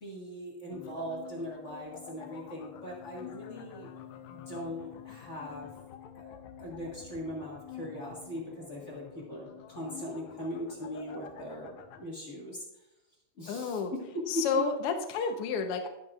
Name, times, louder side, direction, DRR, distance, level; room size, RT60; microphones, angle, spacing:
voice 1, 0.0-3.9 4.3-5.7 6.1-12.6 13.4-14.4, equal, 30° left, -4 dB, 1.9 m, -40 dB
sound 1, 0.7-12.0, left 10 dB, 80° left, 2.0 m, -48 dB
voice 2, 13.5-13.9 14.3-15.9, left 5 dB, 65° left, 5 dB, 1.6 m, -30 dB
11.5 x 10.5 x 2.5 m, 0.90 s
omnidirectional pair, 3.3 m